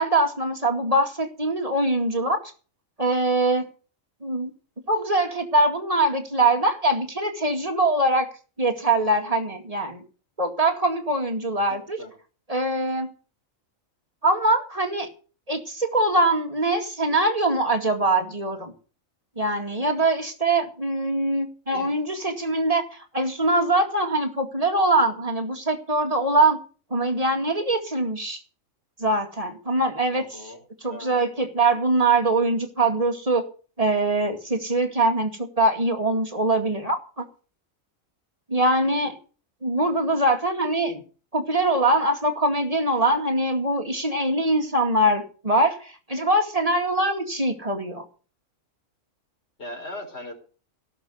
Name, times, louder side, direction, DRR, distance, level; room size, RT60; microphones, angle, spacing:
voice 1, 0.0-2.4 3.0-3.7 4.2-4.5 4.9-8.3 8.6-10.0 10.4-12.0 12.5-13.1 14.2-15.1 15.5-18.7 19.4-26.6 26.9-28.4 29.0-30.2 30.8-33.4 33.8-37.2 38.5-39.1 39.6-41.0 41.3-48.0, right 2 dB, 25° right, 5 dB, 2.2 m, -23 dB
voice 2, 30.1-31.1 49.6-50.3, left 1 dB, 50° left, 3 dB, 4.7 m, -39 dB
17.0 x 6.9 x 7.8 m, 0.38 s
omnidirectional pair, 1.4 m